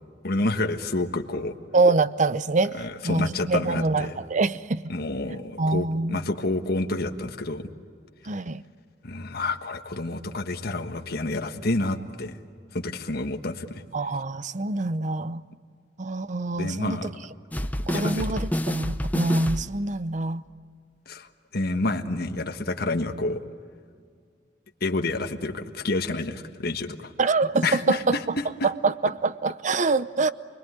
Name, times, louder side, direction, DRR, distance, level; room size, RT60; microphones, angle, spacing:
voice 1, 0.2-1.5 2.7-4.2 4.9-7.7 9.0-12.4 12.7-13.8 16.6-17.1 17.9-18.3 21.1-23.4 24.8-27.1 27.6-28.2, left 2 dB, 55° left, 1.5 m, -29 dB
voice 2, 1.7-4.9 5.6-6.2 8.3-8.6 13.9-15.4 16.0-17.1 17.9-20.4 27.2-28.2 28.6-30.3, right 3 dB, 40° right, 0.7 m, -25 dB
sound 1, 17.5-19.9, equal, 10° left, 0.7 m, -28 dB
29.0 x 21.5 x 9.6 m
head